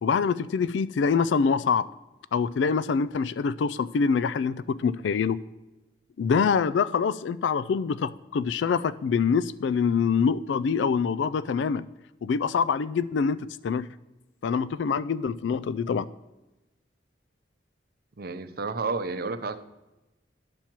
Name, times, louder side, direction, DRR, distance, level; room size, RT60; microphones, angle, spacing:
voice 1, 0.0-1.9 2.3-5.4 6.2-11.9 12.2-13.9 14.4-16.1, left 5 dB, 90° left, 17 dB, 0.3 m, -25 dB
voice 2, 18.2-19.6, right 4 dB, 55° right, 11 dB, 0.6 m, -31 dB
11.5 x 4.5 x 7.2 m, 1.0 s
head